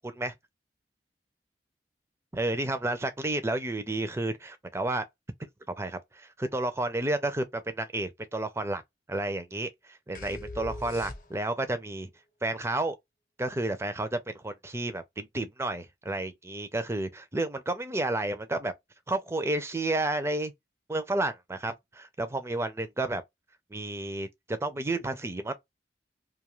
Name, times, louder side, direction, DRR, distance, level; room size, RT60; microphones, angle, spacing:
voice 1, 0.0-0.3 2.4-5.0 5.4-5.5 5.8-8.8 9.1-12.1 12.4-13.0 13.4-18.7 19.1-20.5 20.9-23.2 23.7-25.5, right 2 dB, 15° right, 0.5 m, -31 dB
sound 1, 10.2-11.7, left 1 dB, 50° left, 0.8 m, -40 dB
2.6 x 2.4 x 3.0 m
head